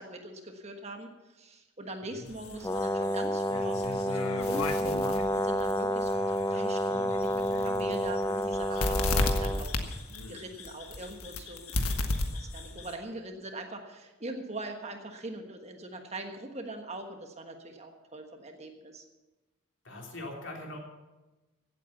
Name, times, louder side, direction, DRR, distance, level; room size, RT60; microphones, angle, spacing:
voice 1, 0.0-19.0, right 2 dB, 30° right, 4 dB, 1.3 m, -42 dB
sound 1, 2.3-12.9, left 2 dB, 80° left, 1.5 m, -34 dB
Brass instrument, 2.6-9.6, equal, 15° left, 0.3 m, -30 dB
voice 2, 19.8-20.8, left 2 dB, 55° left, 0 dB, 3.4 m, -41 dB
16.5 x 8.4 x 7.1 m, 1.1 s
head